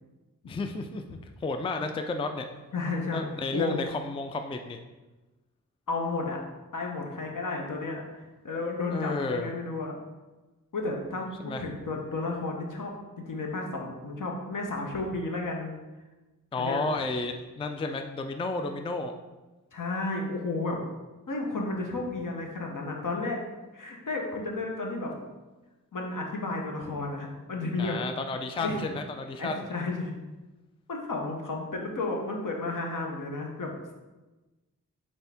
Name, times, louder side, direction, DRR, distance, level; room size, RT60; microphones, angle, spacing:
voice 1, 0.5-2.5 3.1-4.8 8.9-9.5 11.4-11.6 16.5-19.1 27.8-29.6, left 3 dB, 15° left, 6 dB, 0.3 m, -32 dB
voice 2, 2.7-3.2 3.5-3.8 5.9-6.4 6.7-10.0 10.7-12.9 13.3-15.7 16.6-16.8 19.7-20.8 21.3-23.4 23.7-25.1 25.9-28.0 28.6-28.8 29.4-30.1 30.9-33.7, left 3 dB, 65° left, 0 dB, 0.9 m, -32 dB
4.3 x 3.5 x 3.4 m, 1.2 s
cardioid pair, 45°, 35 cm